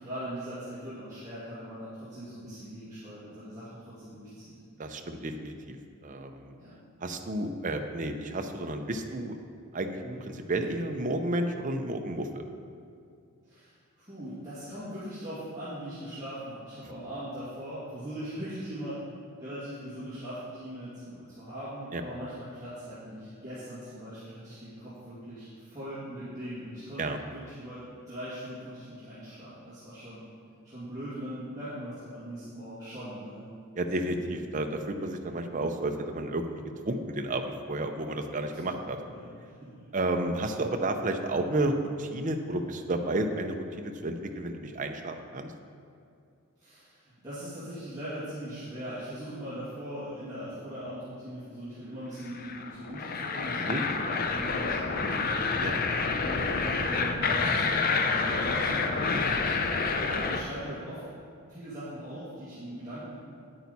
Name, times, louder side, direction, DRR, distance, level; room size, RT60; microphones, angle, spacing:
voice 1, 0.0-4.5 6.6-6.8 10.0-10.2 13.5-19.0 19.4-30.2 30.6-33.4 34.1-34.2 38.3-39.9 46.6-55.7 56.2-59.5 60.0-61.0 61.5-63.2, equal, 15° right, -13 dB, 2.2 m, -40 dB
voice 2, 4.8-5.8 6.0-6.6 7.0-9.4 9.7-10.0 10.3-12.4 21.9-22.0 27.0-27.2 33.8-36.4 36.8-39.0 39.9-45.5 53.6-53.8 55.6-55.9, right 2 dB, 35° right, 5 dB, 0.6 m, -31 dB
sound 1, 52.3-60.4, left 4 dB, 40° left, 0.5 m, -28 dB
9.4 x 8.8 x 4.1 m, 2.4 s
head